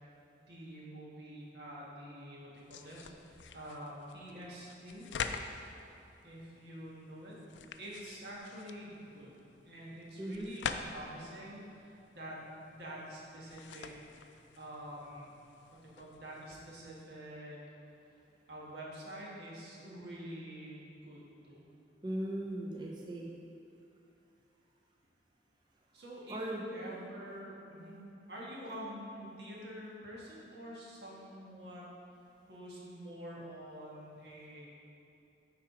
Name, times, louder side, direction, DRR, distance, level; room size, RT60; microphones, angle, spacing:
voice 1, 0.4-5.1 6.2-7.4 7.8-9.3 9.6-15.3 15.7-17.6 18.5-21.6 25.9-26.4 26.7-28.0 28.3-31.8 32.5-34.7, equal, 70° right, -5 dB, 1.6 m, -47 dB
sound 1, 2.5-17.0, left 6 dB, 90° left, 0.4 m, -46 dB
voice 2, 10.2-10.5 22.0-23.3 26.3-26.9, right 1 dB, 25° right, -2 dB, 0.6 m, -38 dB
7.5 x 5.0 x 4.8 m, 2.8 s
head